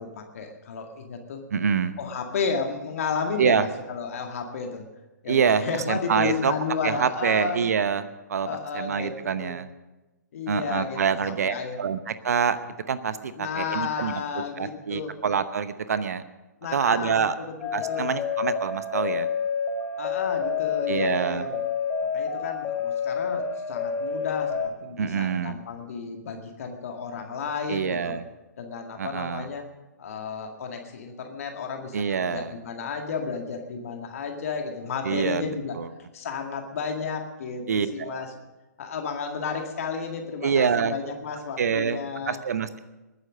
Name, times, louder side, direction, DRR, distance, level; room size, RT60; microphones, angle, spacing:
voice 1, 0.0-1.4 2.0-4.9 5.2-7.6 8.4-9.5 10.3-11.8 13.4-15.1 16.6-18.1 20.0-21.6 22.1-28.2 28.6-29.6 30.0-35.8 36.1-38.3 38.8-42.4, left 5 dB, 50° left, 3 dB, 2.0 m, -32 dB
voice 2, 1.5-2.0 3.4-3.7 5.3-6.5 6.8-8.5 8.7-9.7 10.5-12.6 12.9-14.2 14.6-16.2 16.7-17.4 17.7-19.3 20.9-21.5 25.0-25.6 27.7-28.2 29.0-29.5 31.9-32.5 35.0-35.4 35.8-35.9 37.7-38.2 40.4-41.0 41.6-42.0 42.3-42.8, right 6 dB, 60° right, 13 dB, 0.9 m, -26 dB
sound 1, 17.6-24.7, left 6 dB, 20° left, 2.3 m, -28 dB
21.0 x 9.5 x 6.4 m, 1.1 s
figure-of-eight pair, 125°, 10 cm